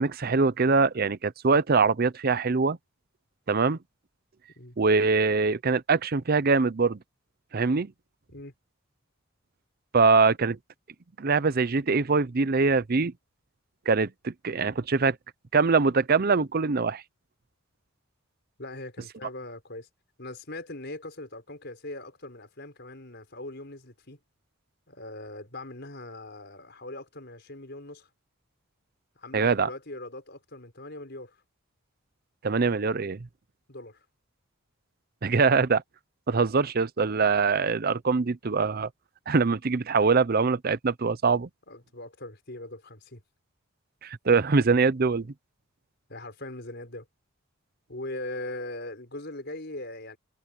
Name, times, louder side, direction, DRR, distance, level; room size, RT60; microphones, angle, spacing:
voice 1, 0.0-2.8 3.5-3.8 4.8-7.0 7.5-7.9 9.9-10.6 11.2-13.1 13.9-15.2 15.5-17.0 29.3-29.7 32.4-33.2 35.2-35.8 36.3-38.9 39.3-41.5 44.0-45.3, right 4 dB, 45° right, 0.6 m, -23 dB
voice 2, 18.6-19.9 20.2-24.2 24.9-28.1 29.2-31.4 33.7-34.0 41.7-43.2 46.1-47.1 47.9-50.2, left 2 dB, 55° left, 5.6 m, -40 dB
head